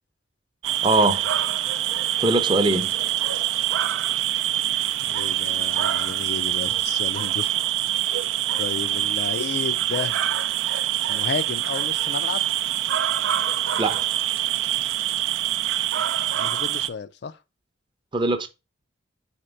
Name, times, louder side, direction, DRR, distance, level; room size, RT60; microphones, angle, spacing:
sound 1, 0.6-16.9, right 11 dB, 80° right, 0.4 m, -25 dB
voice 1, 0.8-1.2 2.2-2.9 13.8-14.0 18.1-18.5, right 2 dB, 25° right, 0.6 m, -21 dB
voice 2, 5.1-7.5 8.6-10.2 11.1-12.4 16.3-17.3, left 5 dB, 60° left, 0.4 m, -32 dB
4.4 x 4.2 x 5.0 m
head